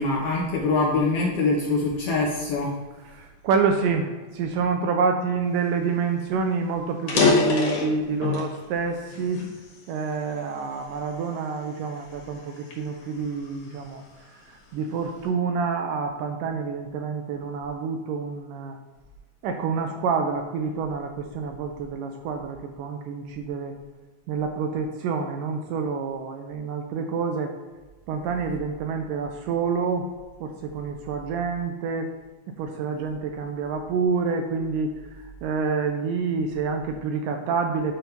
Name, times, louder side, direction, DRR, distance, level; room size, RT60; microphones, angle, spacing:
voice 1, 0.0-2.7, left 3 dB, 80° left, -3 dB, 1.3 m, -24 dB
voice 2, 3.1-9.4 9.9-14.0 14.5-18.8 19.4-23.8 24.3-27.5 28.1-30.1 30.4-32.1 32.6-34.9 35.4-38.0, right 5 dB, 80° right, 5 dB, 2.0 m, -27 dB
sound 1, 5.9-6.0 6.3-6.4 6.9-8.6 9.1-10.4 11.0-11.2 11.8-13.9, left 4 dB, 60° left, 2.9 m, -25 dB
9.2 x 3.6 x 5.7 m, 1.2 s
omnidirectional pair, 4.2 m